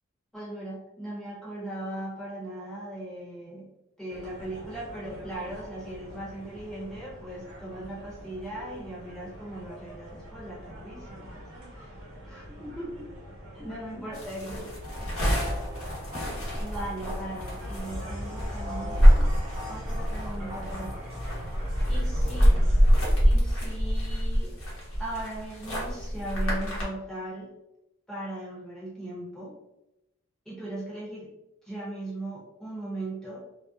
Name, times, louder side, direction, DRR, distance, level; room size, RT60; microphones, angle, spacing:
voice 1, 0.3-3.7 4.0-11.9 12.2-13.1 13.5-14.6 16.6-19.3 19.7-21.1 21.6-22.6 23.2-24.5 25.0-27.5 28.1-29.6 30.4-31.3 31.6-33.5, right 1 dB, 5° left, -8 dB, 0.8 m, -38 dB
sound 1, 4.1-22.9, equal, 75° right, 1.0 m, -43 dB
sound 2, 14.1-26.8, equal, 75° left, 0.9 m, -25 dB
sound 3, 14.8-21.7, left 1 dB, 40° right, 0.6 m, -38 dB
2.6 x 2.1 x 2.3 m, 0.91 s
head